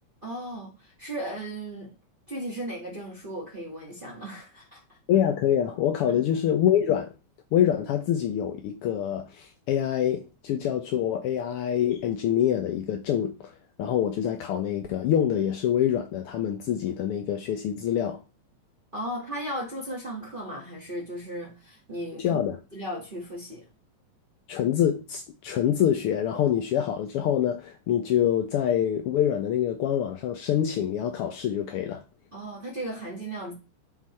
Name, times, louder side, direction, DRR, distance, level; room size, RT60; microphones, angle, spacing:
voice 1, 0.2-1.9 2.3-5.0 6.1-6.2 18.9-22.4 22.7-23.6 32.3-33.5, right 1 dB, 20° right, 1.5 m, -36 dB
voice 2, 5.1-7.1 7.5-13.5 13.8-18.2 22.2-22.6 24.5-32.0, left 10 dB, 75° left, 1.3 m, -25 dB
10.5 x 4.0 x 4.3 m
omnidirectional pair, 3.3 m